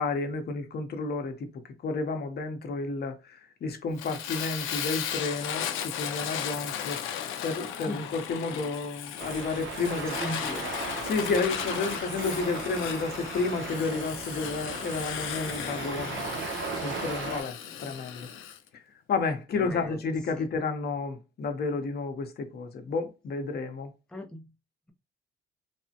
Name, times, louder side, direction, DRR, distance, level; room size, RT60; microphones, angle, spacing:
voice 1, 0.0-1.5 1.8-7.0 7.4-10.2 11.0-16.4 16.8-18.3 19.1-23.9, left 4 dB, 55° left, 0.8 m, -31 dB
Fire, 4.0-18.6, left 9 dB, 85° left, 0.5 m, -36 dB
sound 1, 9.2-17.4, right 4 dB, 70° right, 0.8 m, -37 dB
voice 2, 10.2-10.7 17.3-17.4 19.5-20.0 20.4-20.5 24.1-24.4, left 1 dB, 5° left, 0.5 m, -37 dB
3.3 x 2.1 x 2.8 m
cardioid pair, 90°, 20 cm